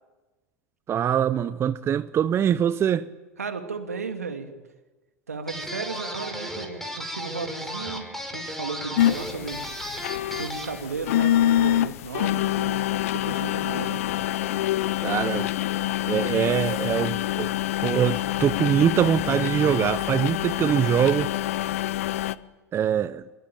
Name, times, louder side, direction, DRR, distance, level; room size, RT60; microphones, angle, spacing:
voice 1, 0.9-3.1 15.0-15.5 16.1-17.5 17.8-21.3 22.7-23.2, right 9 dB, 30° right, 0.9 m, -23 dB
voice 2, 3.4-4.5 5.3-10.0 10.4-14.0, right 4 dB, 85° right, 2.9 m, -35 dB
sound 1, 5.5-10.8, equal, 5° left, 5.4 m, -35 dB
sound 2, 9.0-22.3, left 13 dB, 70° left, 0.8 m, -26 dB
26.0 x 21.5 x 9.1 m
hypercardioid pair, 85°, 8 cm